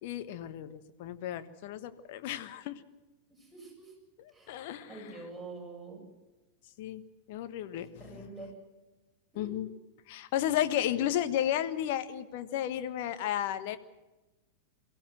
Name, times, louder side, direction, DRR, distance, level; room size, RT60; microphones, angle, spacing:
voice 1, 0.0-2.8 4.2-5.3 6.8-7.0 7.3-8.3 9.3-9.7 10.1-13.8, left 11 dB, 50° left, 11 dB, 1.4 m, -33 dB
voice 2, 3.3-3.9 4.3-6.0 8.0-8.5 9.3-9.6, right 3 dB, ahead, -3 dB, 7.7 m, -46 dB
23.0 x 16.0 x 7.8 m, 1.1 s
figure-of-eight pair, 90°, 0 cm